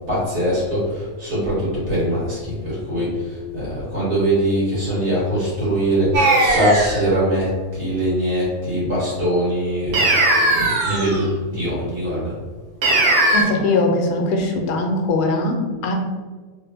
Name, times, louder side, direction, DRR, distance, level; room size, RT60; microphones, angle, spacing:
voice 1, 0.1-10.0 10.5-12.3, equal, 50° right, -8 dB, 1.8 m, -22 dB
sound 1, 6.1-7.1 9.9-11.2 12.8-13.4, right 2 dB, 90° right, 1.2 m, -18 dB
voice 2, 13.3-15.9, left 2 dB, 90° left, 2 dB, 1.1 m, -21 dB
3.5 x 2.1 x 3.3 m, 1.4 s
omnidirectional pair, 1.5 m